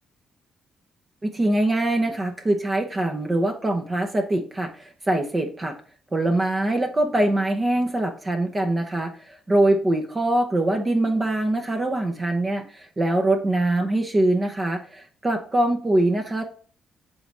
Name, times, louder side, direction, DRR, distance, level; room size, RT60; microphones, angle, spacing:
voice 1, 1.2-5.7 6.1-16.4, right 1 dB, 25° right, 4 dB, 0.9 m, -23 dB
7.7 x 3.4 x 4.2 m, 0.43 s
cardioid pair, 90°, 0 cm